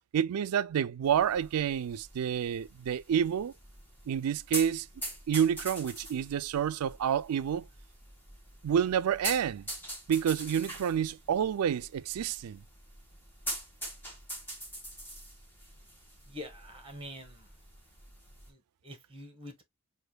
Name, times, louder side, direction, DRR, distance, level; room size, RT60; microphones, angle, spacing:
voice 1, 0.1-3.5 4.1-4.9 5.3-7.6 8.6-9.7 10.1-12.6, right 8 dB, 85° right, 0.4 m, -29 dB
sound 1, 1.0-18.5, right 1 dB, 10° left, 1.4 m, -44 dB
voice 2, 16.3-17.5 18.5-19.6, left 1 dB, 25° right, 1.3 m, -46 dB
6.5 x 2.5 x 2.2 m
head